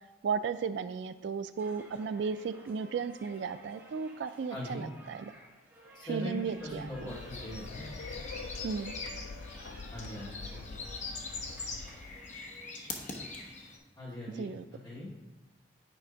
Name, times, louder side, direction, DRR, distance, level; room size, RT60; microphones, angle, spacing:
voice 1, 0.2-5.3 6.1-7.1 8.6-8.9 14.4-14.7, right 6 dB, 70° right, 12 dB, 0.3 m, -35 dB
sound 1, 1.5-12.3, right 1 dB, 15° right, 2.1 m, -55 dB
voice 2, 4.5-4.9 5.9-7.9 9.9-10.8 14.0-14.5 14.8-15.1, left 1 dB, 25° left, -8 dB, 2.1 m, -41 dB
sound 2, 6.6-12.5, left 4 dB, 65° left, 0.4 m, -45 dB
sound 3, 7.1-13.8, left 3 dB, 40° left, 1.0 m, -43 dB
9.1 x 3.5 x 5.1 m, 1.1 s
head